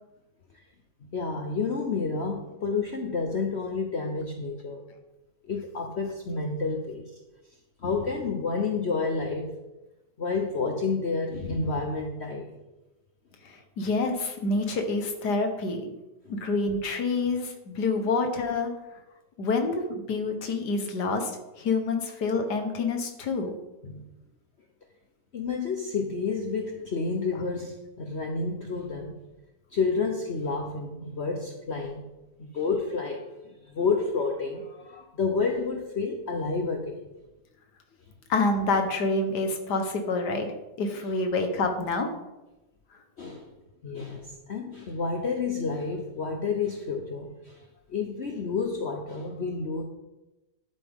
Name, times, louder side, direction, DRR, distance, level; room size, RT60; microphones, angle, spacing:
voice 1, 1.1-4.8 5.4-7.1 7.8-9.5 10.2-12.5 23.8-24.0 25.3-29.2 29.7-32.0 32.4-33.2 33.7-37.0 43.2-43.5 43.8-47.6 47.9-49.8, left 4 dB, 50° left, 3 dB, 1.0 m, -30 dB
voice 2, 13.5-15.9 16.3-18.7 19.4-21.3 21.6-23.5 38.3-40.5 40.8-42.1, left 3 dB, 75° left, 5 dB, 1.9 m, -27 dB
11.5 x 8.5 x 3.7 m, 1.0 s
omnidirectional pair, 1.8 m